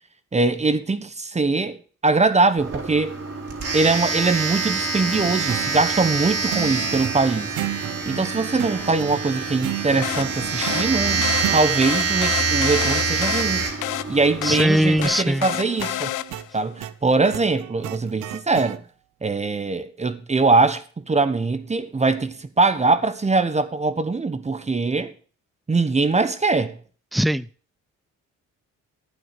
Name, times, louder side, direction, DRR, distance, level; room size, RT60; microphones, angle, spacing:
voice 1, 0.3-1.8 2.0-3.2 3.7-7.5 8.1-13.6 14.1-16.1 16.5-18.8 19.2-25.1 25.7-26.8, right 3 dB, 20° right, 1.1 m, -22 dB
Domestic sounds home sounds, 2.6-15.1, right 4 dB, 50° right, 3.5 m, -26 dB
sound 1, 5.1-11.7 15.4-18.8, right 14 dB, 85° right, 0.8 m, -34 dB
sound 2, 10.0-16.6, left 15 dB, 80° left, 0.7 m, -30 dB
voice 2, 14.4-15.5 27.1-27.5, equal, ahead, 0.5 m, -20 dB
12.0 x 9.3 x 5.2 m
cardioid pair, 90°, 30 cm